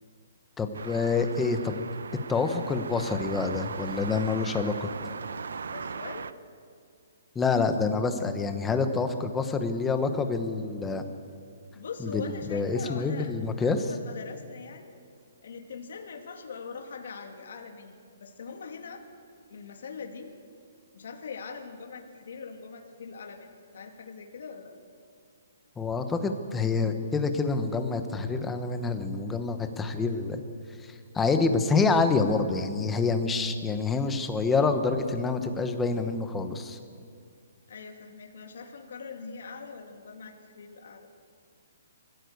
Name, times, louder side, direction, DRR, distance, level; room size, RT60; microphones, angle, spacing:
voice 1, 0.6-1.8 2.3-4.9 7.3-11.0 12.0-13.8 25.8-30.4 30.8-36.8, left 4 dB, 10° left, 7 dB, 1.1 m, -27 dB
sound 1, 0.7-6.3, right 5 dB, 85° right, 0.8 m, -38 dB
voice 2, 5.6-6.3 11.7-13.3 13.6-15.0 15.4-18.0 18.2-19.0 19.5-20.3 20.9-24.7 37.7-41.1, left 5 dB, 60° left, 3 dB, 2.5 m, -42 dB
23.5 x 15.5 x 8.1 m, 2.2 s
hypercardioid pair, 170°, 0 cm